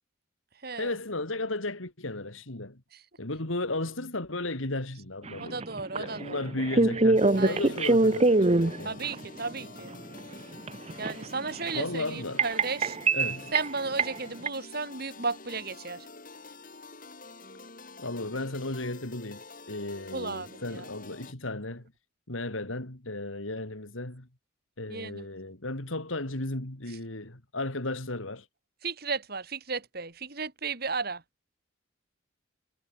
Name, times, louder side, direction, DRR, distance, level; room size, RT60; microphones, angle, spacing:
voice 1, 0.8-2.8 3.2-5.6 5.9-9.0 11.7-12.5 13.1-13.5 18.0-21.8 22.3-24.3 24.8-28.5, left 2 dB, 80° left, 3.2 m, -35 dB
sound 1, 5.3-9.2 9.8-11.9 12.4-13.7 14.0-14.2 14.5-14.6, right 2 dB, 30° right, 0.9 m, -24 dB
voice 2, 5.4-6.4 7.3-7.6 8.8-9.9 11.0-13.0 13.5-16.0 20.1-20.8 24.9-25.2 28.8-31.2, right 4 dB, 50° right, 3.0 m, -34 dB
sound 2, 7.1-21.3, left 3 dB, 40° left, 4.4 m, -48 dB
head